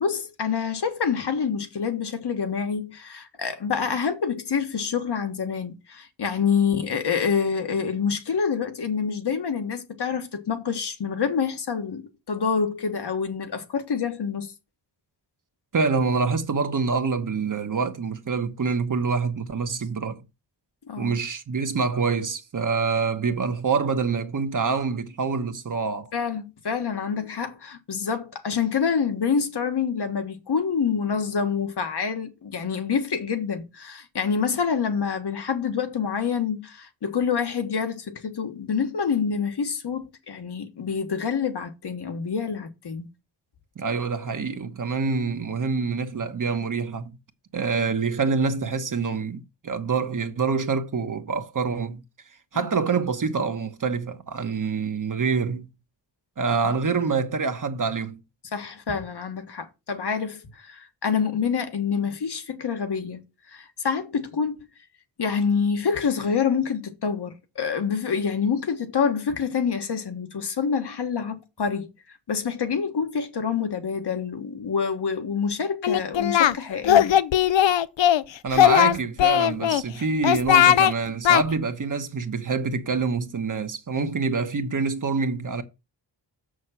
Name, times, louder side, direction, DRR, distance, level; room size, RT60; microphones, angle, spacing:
voice 1, 0.0-14.5 20.9-21.1 26.1-43.1 52.5-52.6 58.5-63.2 63.5-64.7 65.2-77.1, left 6 dB, 65° left, 1.5 m, -27 dB
voice 2, 15.7-20.2 21.0-26.1 43.8-47.2 47.5-52.0 52.5-55.7 56.4-58.2 78.4-85.6, right 5 dB, 45° right, 1.1 m, -26 dB
Singing, 75.8-76.5 76.8-78.2 78.5-79.8 80.2-80.9 81.2-81.4, left 11 dB, 80° left, 0.7 m, -18 dB
7.2 x 6.4 x 5.6 m
wide cardioid pair, 150°, 44 cm